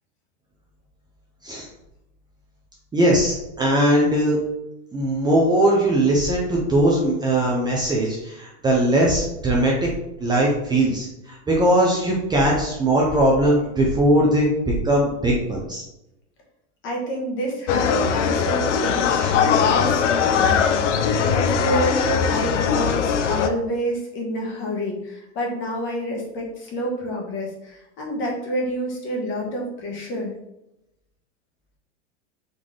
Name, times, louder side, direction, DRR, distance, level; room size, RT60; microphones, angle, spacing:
voice 1, 2.9-4.4 4.9-9.9 10.2-15.8 19.2-19.3, right 1 dB, 10° right, -3 dB, 0.6 m, -20 dB
voice 2, 16.8-30.3, equal, 35° left, -1 dB, 1.4 m, -28 dB
sound 1, 17.7-23.5, left 7 dB, 80° left, 0.6 m, -20 dB
3.9 x 2.9 x 3.8 m, 0.88 s
hypercardioid pair, 125°, 35 cm